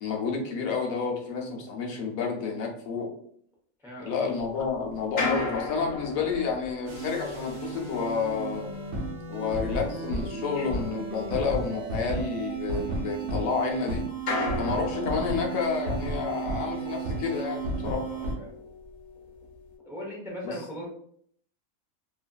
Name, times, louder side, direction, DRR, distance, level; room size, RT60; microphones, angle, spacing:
voice 1, 0.0-3.1 4.0-8.7 9.3-14.0 14.6-18.0 20.4-20.5, left 5 dB, 80° left, 0 dB, 1.1 m, -30 dB
voice 2, 3.8-4.3 14.4-14.7 18.0-18.6 19.8-20.9, equal, 5° right, -3 dB, 0.3 m, -40 dB
sound 1, 4.4-13.8 14.2-19.8, left 3 dB, 60° left, 1.1 m, -38 dB
sound 2, 6.9-18.3, right 3 dB, 65° right, 1.0 m, -33 dB
2.8 x 2.5 x 2.2 m, 0.64 s
omnidirectional pair, 1.4 m